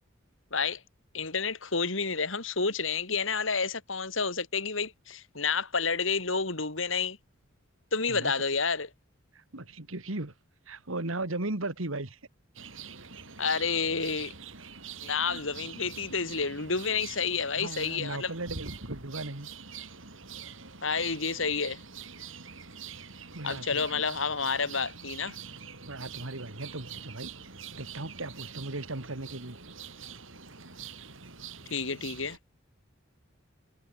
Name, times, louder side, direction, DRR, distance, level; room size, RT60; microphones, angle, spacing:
voice 1, 0.5-0.8 1.1-7.2 7.9-8.9 13.4-14.3 15.0-18.3 20.8-21.8 23.4-25.4 31.7-32.4, left 5 dB, 70° left, 3.5 m, -30 dB
voice 2, 9.3-10.3 10.7-12.2 15.2-15.4 17.6-19.5 23.3-24.0 25.9-27.4 27.7-29.6, right 2 dB, 85° right, 2.4 m, -37 dB
sound 1, 12.6-32.4, right 6 dB, 70° right, 5.7 m, -45 dB
head